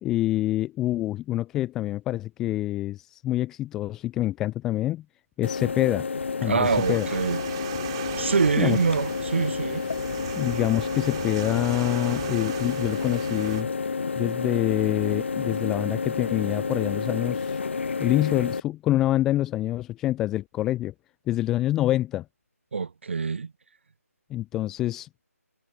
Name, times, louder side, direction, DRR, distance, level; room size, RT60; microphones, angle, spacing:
voice 1, 0.0-5.0 5.4-6.1 6.4-7.1 8.6-8.8 10.3-13.7 14.2-17.6 18.0-20.9 21.3-22.2 24.3-25.2, left 14 dB, 5° left, 0.3 m, -26 dB
sound 1, 5.4-18.6, left 5 dB, 45° left, 0.6 m, -30 dB
voice 2, 6.5-7.4 8.2-9.8 22.7-23.5, right 5 dB, 45° right, 0.7 m, -25 dB
sound 2, 6.6-13.6, right 15 dB, 20° right, 2.8 m, -38 dB
figure-of-eight pair, 155°, 9 cm